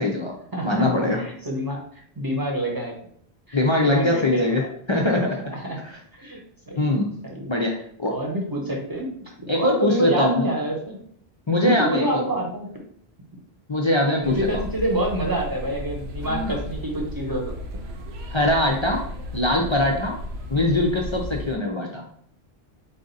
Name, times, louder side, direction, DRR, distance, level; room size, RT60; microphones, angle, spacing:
voice 1, 0.0-0.3 0.6-1.2 3.5-4.6 4.9-5.4 5.8-6.0 6.8-7.1 7.5-8.2 9.5-10.5 11.5-12.2 13.7-14.6 16.2-16.6 18.3-19.0 19.3-20.2 20.5-22.0, left 1 dB, 40° left, 0 dB, 0.5 m, -22 dB
voice 2, 0.5-1.8 2.2-2.9 3.5-4.5 5.4-5.8 6.1-6.4 6.7-6.9 7.3-7.5 8.1-9.1 9.5-11.0 11.6-12.7 14.2-17.5, right 1 dB, 20° right, -1 dB, 0.9 m, -27 dB
sound 1, 14.2-21.6, equal, 80° right, 0.9 m, -34 dB
4.1 x 2.5 x 3.9 m, 0.63 s
omnidirectional pair, 1.1 m